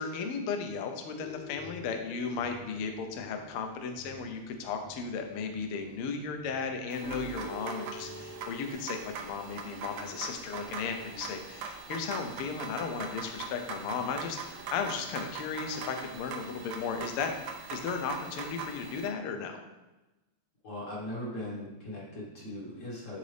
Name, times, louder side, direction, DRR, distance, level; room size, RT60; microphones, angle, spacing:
voice 1, 0.0-14.4 14.7-17.3 17.7-19.6, left 5 dB, 80° left, 5 dB, 1.2 m, -35 dB
sound 1, 1.2-6.0 6.4-8.7, left 1 dB, 65° left, 1.5 m, -46 dB
sound 2, 6.9-19.1, right 5 dB, 90° right, 1.2 m, -42 dB
voice 2, 20.6-23.2, left 1 dB, 50° left, -4 dB, 0.9 m, -39 dB
9.4 x 4.0 x 3.3 m, 1.1 s
omnidirectional pair, 3.4 m